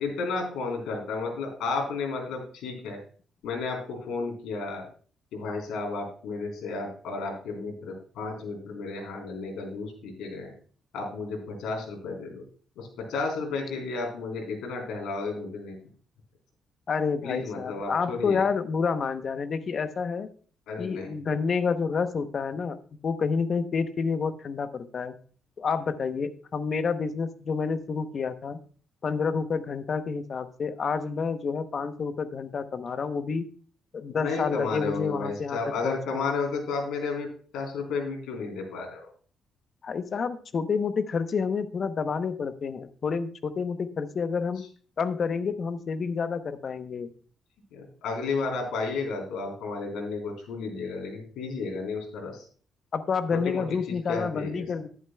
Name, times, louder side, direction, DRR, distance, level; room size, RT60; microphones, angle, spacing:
voice 1, 0.0-3.0 3.4-4.9 5.3-10.5 10.9-12.4 12.8-15.8 17.2-18.4 20.7-21.1 34.1-37.3 37.5-39.1 47.7-52.5 53.3-54.7, left 4 dB, 85° left, 1 dB, 3.6 m, -32 dB
voice 2, 16.9-20.3 20.8-22.8 23.0-25.1 25.6-28.6 29.0-33.4 33.9-36.2 39.8-44.6 45.0-47.1 52.9-54.9, left 5 dB, 45° left, 11 dB, 0.7 m, -29 dB
11.5 x 11.0 x 2.2 m, 0.43 s
cardioid pair, 120°, 0 cm